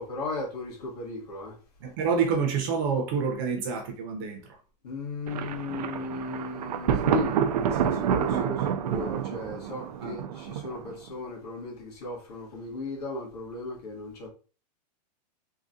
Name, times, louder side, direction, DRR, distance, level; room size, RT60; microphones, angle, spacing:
voice 1, 0.0-1.6 4.8-14.3, left 2 dB, 65° left, 1.6 m, -36 dB
voice 2, 1.8-4.4 8.3-8.5 10.0-10.2, right 5 dB, 30° right, 0.7 m, -28 dB
Thunder, 5.3-11.1, right 8 dB, 65° right, 0.4 m, -28 dB
3.7 x 2.3 x 2.6 m
supercardioid pair, 175°, 21 cm